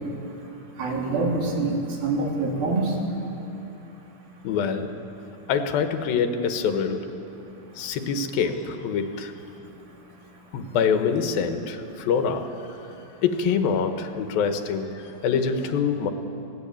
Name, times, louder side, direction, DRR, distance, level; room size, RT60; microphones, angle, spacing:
voice 1, 0.8-3.0, right 3 dB, 80° right, -1 dB, 4.7 m, -25 dB
voice 2, 4.4-4.9 5.5-7.1 7.8-9.3 10.5-12.5 13.2-16.1, left 6 dB, 80° left, 7 dB, 3.0 m, -25 dB
23.0 x 18.0 x 8.8 m, 2.9 s
omnidirectional pair, 4.1 m